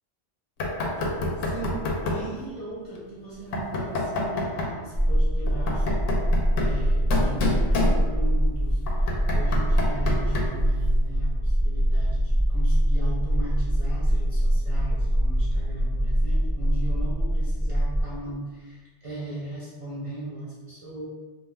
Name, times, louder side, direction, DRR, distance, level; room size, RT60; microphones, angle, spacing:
Knock, 0.6-2.3 3.5-4.8 5.5-8.4 8.9-10.7, left 2 dB, 85° left, 0.9 m, -28 dB
voice 1, 1.4-1.8 2.1-5.9 6.6-9.1 9.3-21.1, right 2 dB, 45° right, -7 dB, 0.4 m, -37 dB
sound 1, 4.9-18.0, equal, 5° left, 0.6 m, -23 dB
2.4 x 2.3 x 3.2 m, 1.3 s
omnidirectional pair, 1.3 m